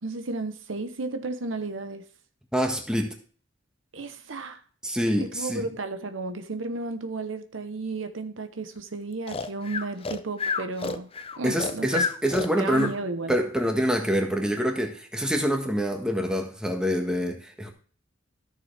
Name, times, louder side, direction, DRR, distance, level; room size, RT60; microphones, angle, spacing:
voice 1, 0.0-2.1 3.9-4.6 5.2-11.1 11.4-12.0 12.5-13.4, right 3 dB, 75° right, 0.9 m, -33 dB
voice 2, 2.5-3.1 4.8-5.6 11.4-12.9 13.3-17.7, equal, 5° right, 1.5 m, -26 dB
Breathing, 9.3-13.0, left 5 dB, 30° left, 0.5 m, -30 dB
13.5 x 6.8 x 3.3 m
head